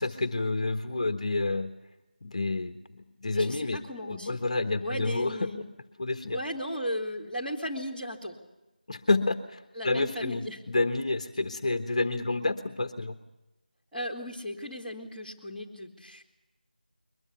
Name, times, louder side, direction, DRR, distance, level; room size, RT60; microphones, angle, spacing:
voice 1, 0.0-1.7 2.2-3.8 4.1-5.4 6.0-6.4 8.9-9.6 9.8-13.2, left 2 dB, 45° left, 8 dB, 1.3 m, -29 dB
voice 2, 3.3-4.4 4.8-5.6 6.3-8.4 9.7-10.6 13.9-16.2, equal, 5° right, -9 dB, 2.4 m, -36 dB
22.5 x 21.0 x 7.0 m, 1.0 s
figure-of-eight pair, 170°, 5 cm